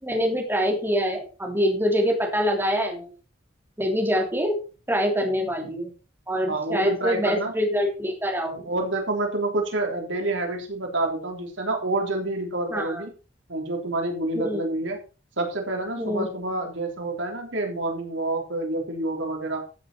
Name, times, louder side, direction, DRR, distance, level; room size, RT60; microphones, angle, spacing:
voice 1, 0.0-3.1 3.8-4.6 4.9-5.9 6.3-8.7 12.7-13.0 14.3-14.6 16.0-16.3, equal, 10° right, 1 dB, 3.1 m, -25 dB
voice 2, 6.5-7.5 8.7-13.1 13.5-15.0 15.4-19.7, right 2 dB, 80° right, 2 dB, 3.6 m, -28 dB
14.0 x 7.8 x 4.5 m, 0.34 s
head